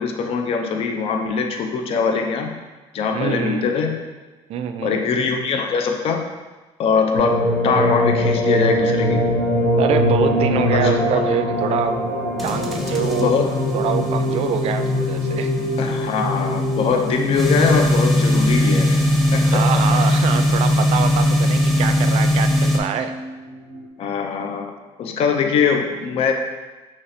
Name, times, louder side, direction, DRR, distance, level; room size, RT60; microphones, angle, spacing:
voice 1, 0.0-2.6 2.9-4.0 4.8-6.2 6.8-9.2 10.7-11.0 13.1-13.5 15.8-19.0 19.3-19.6 20.0-20.1 24.0-24.7 25.0-26.3, left 5 dB, 55° left, 4 dB, 0.5 m, -22 dB
voice 2, 3.1-3.7 4.5-5.0 9.8-12.0 12.4-13.4 13.7-15.6 19.5-23.1, right 8 dB, 60° right, 8 dB, 0.4 m, -25 dB
sound 1, 7.1-23.3 23.7-23.8, left 1 dB, 85° left, 0.8 m, -23 dB
sound 2, 12.4-22.8, left 1 dB, ahead, 0.7 m, -20 dB
5.6 x 3.1 x 2.6 m, 1.2 s
cardioid pair, 100°, 12 cm